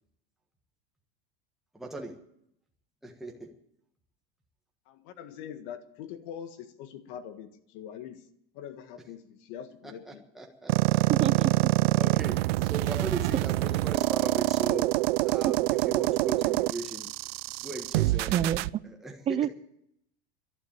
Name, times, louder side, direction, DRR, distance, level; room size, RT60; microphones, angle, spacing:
voice 1, 1.7-2.1 3.0-3.5 10.1-11.0 11.9-14.9 15.2-17.1 17.6-18.5 18.8-19.1, right 2 dB, ahead, 0 dB, 1.5 m, -38 dB
voice 2, 4.9-8.2 8.5-10.2 11.0-11.1, left 9 dB, 60° left, 10 dB, 1.7 m, -43 dB
sound 1, 10.7-18.7, right 19 dB, 80° right, 0.5 m, -26 dB
voice 3, 11.1-11.7 15.4-15.5 18.3-18.6 19.3-19.5, right 9 dB, 20° right, 16 dB, 0.5 m, -27 dB
12.0 x 11.0 x 8.9 m, 0.75 s
supercardioid pair, 140°, 30 cm